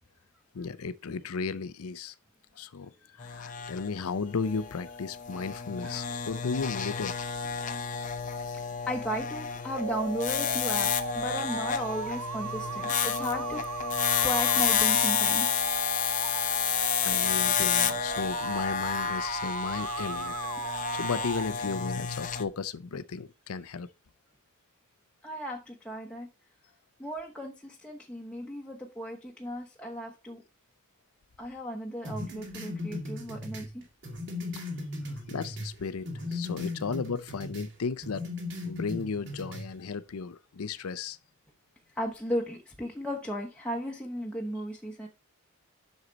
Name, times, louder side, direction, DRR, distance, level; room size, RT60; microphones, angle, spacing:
voice 1, 0.5-2.1 2.6-7.4 16.3-16.6 17.0-20.4 20.6-23.9 34.5-34.7 35.3-38.3 38.6-41.2, left 5 dB, 85° left, 0.6 m, -35 dB
sound 1, 3.2-22.4, left 8 dB, 35° left, 0.8 m, -30 dB
voice 2, 5.8-6.2 8.9-13.6 14.2-15.5 25.2-26.3 27.0-30.4 31.4-33.8 41.9-45.1, equal, 5° left, 1.0 m, -35 dB
sound 2, 9.7-21.5, right 6 dB, 90° right, 0.6 m, -37 dB
sound 3, 32.0-35.7 36.1-37.7 38.0-39.7, left 2 dB, 55° right, 2.1 m, -37 dB
7.9 x 6.4 x 4.0 m
head